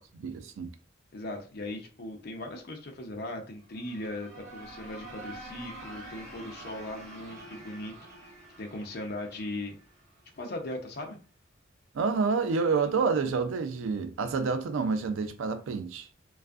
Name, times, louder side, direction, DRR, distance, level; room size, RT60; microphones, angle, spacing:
voice 1, 0.1-0.7 11.9-16.1, right 4 dB, 85° right, 0.4 m, -28 dB
voice 2, 1.1-7.9 8.6-9.7 10.4-11.2, left 1 dB, 55° left, 0.5 m, -38 dB
sound 1, 3.6-10.4, right 1 dB, 35° right, 1.4 m, -47 dB
2.5 x 2.3 x 2.3 m
head